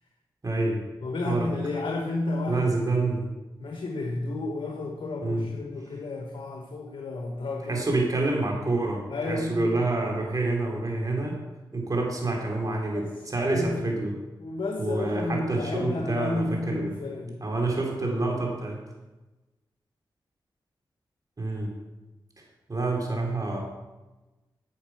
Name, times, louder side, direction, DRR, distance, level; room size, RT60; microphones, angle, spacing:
voice 1, 0.4-0.8 1.3-1.5 2.5-3.3 5.2-5.5 7.7-11.4 11.7-14.1 14.8-16.9 17.4-18.8 21.4-21.7 22.7-23.6, right 2 dB, 45° right, -1 dB, 2.9 m, -27 dB
voice 2, 1.0-2.7 3.6-7.8 9.1-9.7 12.9-13.1 13.5-13.8 14.4-17.5, left 2 dB, 75° left, 2 dB, 1.2 m, -32 dB
9.8 x 6.6 x 5.8 m, 1.1 s
cardioid pair, 55°, 9 cm